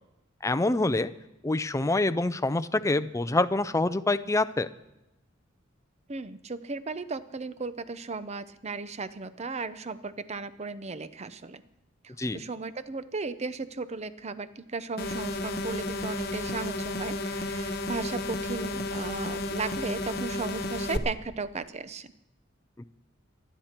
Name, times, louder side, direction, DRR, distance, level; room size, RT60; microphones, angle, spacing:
voice 1, 0.4-1.1 1.4-4.7 12.2-12.4 22.8-22.9, left 2 dB, 15° left, 12 dB, 0.5 m, -26 dB
voice 2, 6.1-11.6 12.0-22.1, right 4 dB, 35° right, 13 dB, 0.7 m, -36 dB
sound 1, 15.0-21.0, left 2 dB, 50° left, 1.1 m, -32 dB
28.0 x 10.0 x 4.4 m, 0.93 s
head